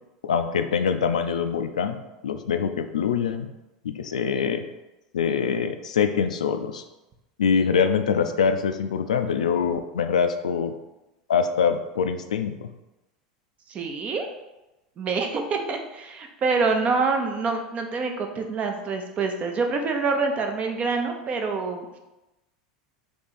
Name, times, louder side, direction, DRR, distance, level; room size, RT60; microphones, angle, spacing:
voice 1, 0.2-3.5 3.8-4.6 5.1-6.8 7.4-10.7 11.3-12.7, left 6 dB, 85° left, 8 dB, 0.3 m, -24 dB
voice 2, 13.7-14.3 15.0-22.0, right 4 dB, 35° right, 4 dB, 0.7 m, -26 dB
3.5 x 2.9 x 4.2 m, 0.99 s
hypercardioid pair, 85°, 4 cm